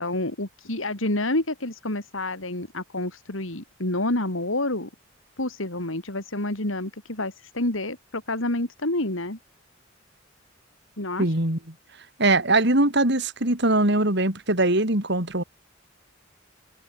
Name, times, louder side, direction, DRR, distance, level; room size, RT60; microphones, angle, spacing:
voice 1, 0.0-4.9 5.4-9.4 11.0-11.3, left 1 dB, 75° left, 3.7 m, -28 dB
voice 2, 11.2-11.6 12.2-15.4, right 2 dB, 55° right, 4.4 m, -21 dB
head